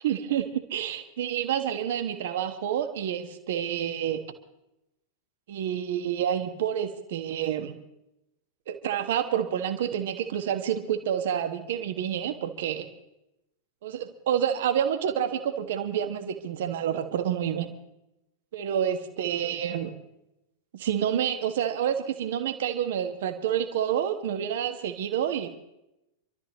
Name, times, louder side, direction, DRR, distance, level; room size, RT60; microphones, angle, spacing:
voice 1, 0.0-4.2 5.5-7.7 8.7-12.9 13.8-17.7 18.5-19.9 20.7-25.5, right 9 dB, 55° right, 7 dB, 1.6 m, -28 dB
28.0 x 13.0 x 3.1 m, 0.88 s
figure-of-eight pair, 90°, 0 cm